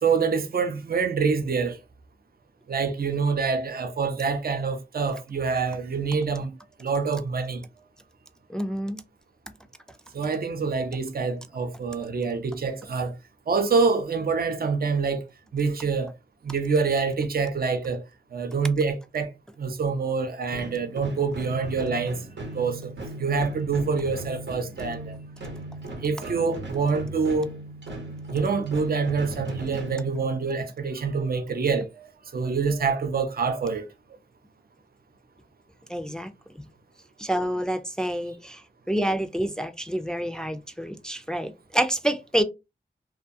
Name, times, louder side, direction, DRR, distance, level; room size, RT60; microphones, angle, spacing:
voice 1, 0.0-1.8 2.7-6.5 6.8-7.6 10.1-13.1 13.5-15.2 15.5-16.1 16.4-18.0 18.3-19.3 19.6-22.9 23.2-25.2 26.0-27.5 28.3-33.8, right 5 dB, 55° right, 0.6 m, -26 dB
voice 2, 8.5-9.0 35.9-36.3 37.2-38.6 38.9-42.4, right 1 dB, 5° left, 0.4 m, -28 dB
sound 1, 20.5-30.7, right 1 dB, 85° right, 1.0 m, -38 dB
2.3 x 2.3 x 2.6 m
cardioid pair, 50°, 19 cm